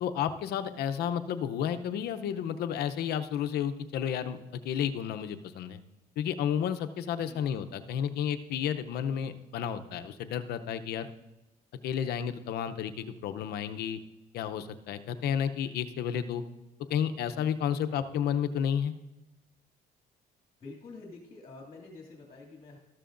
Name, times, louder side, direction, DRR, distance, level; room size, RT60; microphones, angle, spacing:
voice 1, 0.0-5.8 6.2-11.1 11.8-14.0 14.3-16.4 16.9-18.9, left 8 dB, 70° left, 9 dB, 0.7 m, -31 dB
voice 2, 20.6-22.8, left 3 dB, 35° left, -1 dB, 2.3 m, -47 dB
13.5 x 12.5 x 2.6 m, 1.0 s
cardioid pair, 110°, 17 cm